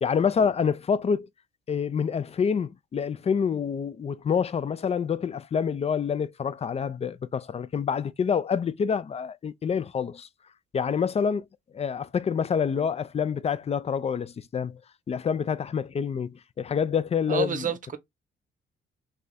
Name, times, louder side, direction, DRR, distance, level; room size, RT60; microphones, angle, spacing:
voice 1, 0.0-1.3 1.7-10.3 10.7-11.4 11.7-14.8 15.1-17.7, left 6 dB, 30° left, 0.4 m, -27 dB
voice 2, 17.3-18.0, right 6 dB, 40° right, 0.8 m, -29 dB
3.3 x 2.4 x 4.0 m
cardioid pair, 90°, 20 cm